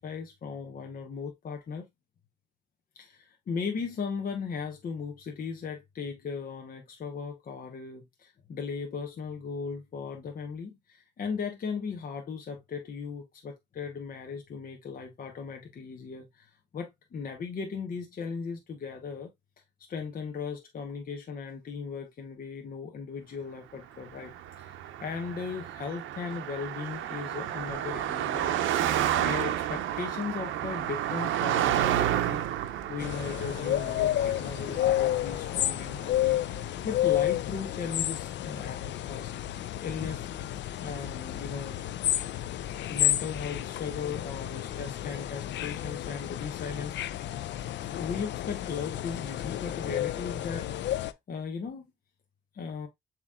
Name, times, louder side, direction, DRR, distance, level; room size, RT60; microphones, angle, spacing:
voice 1, 0.0-1.8 3.0-19.3 19.9-28.5 28.8-32.5 32.9-40.3 40.8-41.8 42.9-47.0 47.9-50.9 51.3-51.9 52.5-52.9, left 5 dB, 45° left, 0.9 m, -37 dB
Car passing by, 24.2-35.7, right 11 dB, 80° right, 0.6 m, -31 dB
sound 1, 33.0-51.1, left 12 dB, 65° left, 0.4 m, -31 dB
7.1 x 3.0 x 2.3 m
cardioid pair, 90°, 20 cm